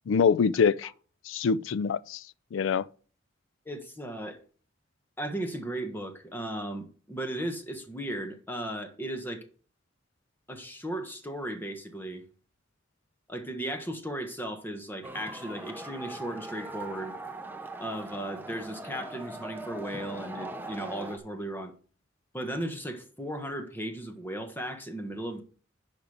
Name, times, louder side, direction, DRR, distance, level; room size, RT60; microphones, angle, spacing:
voice 1, 0.1-0.9 1.3-2.2 2.5-2.9, left 6 dB, 85° left, 0.4 m, -24 dB
voice 2, 3.6-4.4 5.2-9.5 10.5-12.2 13.3-17.1 17.8-21.7 22.3-25.4, right 1 dB, 10° left, 1.4 m, -36 dB
sound 1, 15.0-21.2, right 2 dB, 10° right, 0.8 m, -40 dB
10.5 x 5.2 x 5.1 m
head